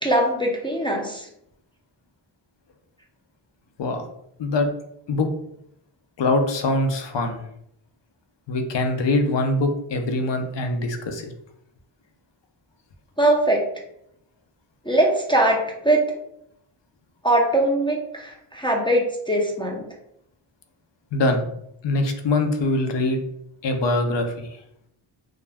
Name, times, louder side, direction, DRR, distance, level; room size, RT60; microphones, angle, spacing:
voice 1, 0.0-1.3 13.2-13.7 14.9-16.1 17.2-19.9, right 1 dB, 10° left, -1 dB, 0.4 m, -21 dB
voice 2, 4.4-4.7 5.1-5.3 6.2-7.4 8.5-11.3 21.1-21.5 21.8-23.2 23.6-24.6, left 2 dB, 60° left, 6 dB, 0.5 m, -23 dB
2.3 x 2.1 x 3.3 m, 0.75 s
wide cardioid pair, 65°, 50 cm